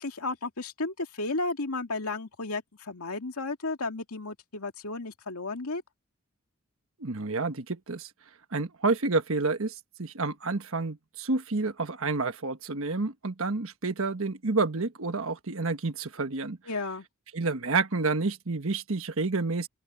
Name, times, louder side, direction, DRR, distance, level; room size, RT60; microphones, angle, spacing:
voice 1, 0.0-5.8 16.7-17.1, left 3 dB, 80° left, 2.4 m, -33 dB
voice 2, 7.0-8.1 8.5-16.6 17.3-19.7, right 3 dB, 65° right, 1.4 m, -29 dB
open air
head